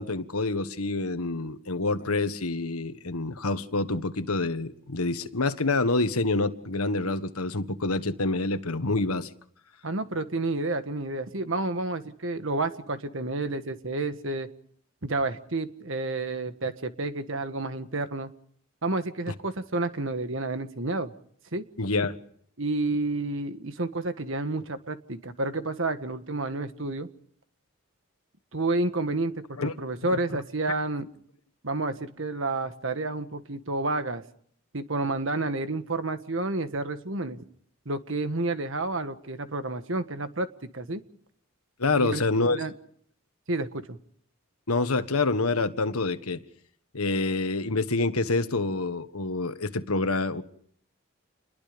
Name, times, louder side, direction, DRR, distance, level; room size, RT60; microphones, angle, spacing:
voice 1, 0.0-9.3 21.8-22.1 29.6-29.7 41.8-42.6 44.7-46.4 46.9-50.4, left 3 dB, 85° left, 1.5 m, -27 dB
voice 2, 9.8-14.5 15.0-18.3 18.8-21.1 21.5-21.7 22.6-27.1 28.5-31.1 31.6-34.2 34.7-37.4 37.8-41.0 41.9-42.2 42.5-42.7 43.5-44.0, right 2 dB, 60° right, 1.6 m, -30 dB
28.5 x 21.5 x 5.2 m
head